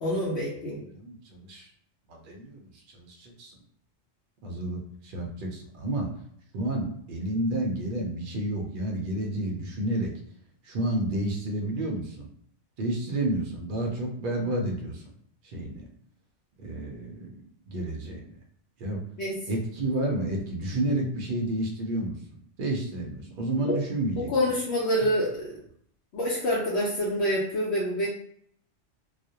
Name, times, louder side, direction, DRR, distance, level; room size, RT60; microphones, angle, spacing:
voice 1, 0.0-0.8 19.2-19.4 23.6-23.7 24.2-25.5 26.1-28.1, equal, 65° left, -6 dB, 0.8 m, -27 dB
voice 2, 0.9-1.7 2.1-3.6 4.4-6.1 6.5-10.1 10.7-12.3 12.8-15.0 15.5-15.8 16.6-17.4 17.7-18.3 18.8-19.0 19.5-22.2 22.6-24.3, right 1 dB, 60° right, 1 dB, 0.6 m, -30 dB
2.3 x 2.1 x 2.7 m, 0.67 s
omnidirectional pair, 1.3 m